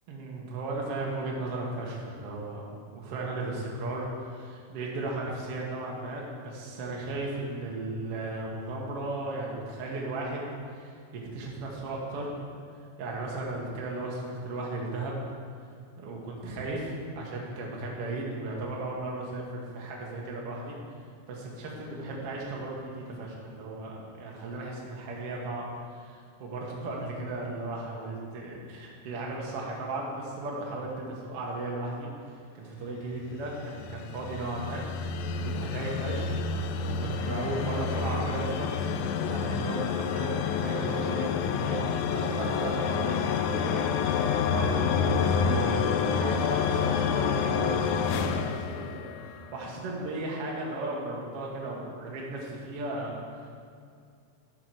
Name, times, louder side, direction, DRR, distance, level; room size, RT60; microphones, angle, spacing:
voice 1, 0.1-2.6 2.9-10.4 10.7-10.9 11.3-12.3 13.0-15.1 16.0-20.7 21.3-25.6 25.9-35.1 35.4-36.4 36.7-38.9 39.2-43.9 44.5-53.5, right 2 dB, 60° right, -3 dB, 1.6 m, -36 dB
sound 1, 33.4-49.5, left 6 dB, 85° left, 1.9 m, -28 dB
12.0 x 6.0 x 4.6 m, 2.3 s
omnidirectional pair, 4.3 m